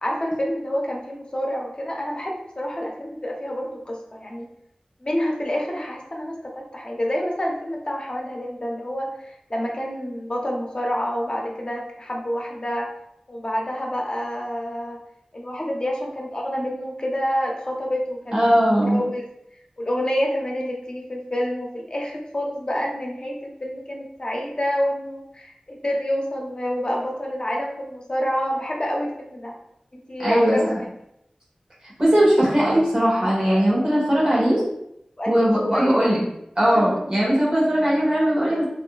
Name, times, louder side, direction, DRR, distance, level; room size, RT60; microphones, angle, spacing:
voice 1, 0.0-4.5 5.0-12.9 13.3-15.0 15.3-18.4 18.9-19.3 19.8-29.5 29.9-30.9 35.2-36.0, equal, 40° left, -1 dB, 0.7 m, -28 dB
voice 2, 18.3-19.0 30.2-30.8 32.0-34.6 35.3-36.2 36.6-38.6, equal, 35° right, -7 dB, 1.3 m, -19 dB
3.5 x 2.6 x 2.3 m, 0.78 s
cardioid pair, 40°, 2 cm